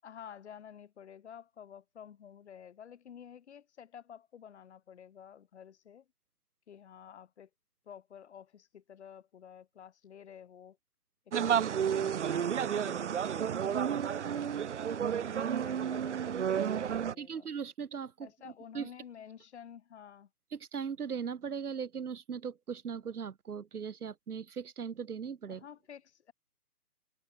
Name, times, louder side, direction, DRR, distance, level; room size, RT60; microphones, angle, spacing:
voice 1, 0.0-6.1 6.7-7.5 7.9-10.8 11.3-17.5 18.2-20.3 25.5-26.3, left 8 dB, 45° left, 7.4 m, -51 dB
sound 1, 11.3-17.1, right 8 dB, 50° right, 0.7 m, -31 dB
voice 2, 17.2-18.9 20.5-25.6, right 6 dB, 70° right, 1.6 m, -39 dB
hypercardioid pair, 155°, 46 cm